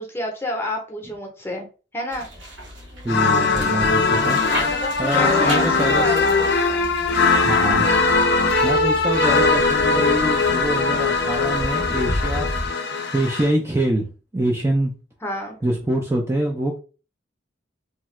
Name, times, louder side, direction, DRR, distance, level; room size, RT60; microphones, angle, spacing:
voice 1, 0.0-1.7 1.9-2.3 4.4-6.9 15.2-15.6, left 1 dB, 10° left, 0.7 m, -29 dB
sound 1, 2.1-12.7, equal, 85° right, 1.1 m, -33 dB
voice 2, 3.0-4.4 5.0-6.1 7.4-8.3 8.6-12.5 13.1-14.9 15.6-16.8, right 1 dB, 15° right, 0.3 m, -25 dB
sound 2, 3.1-13.5, left 4 dB, 60° left, 0.5 m, -20 dB
2.8 x 2.2 x 3.1 m
head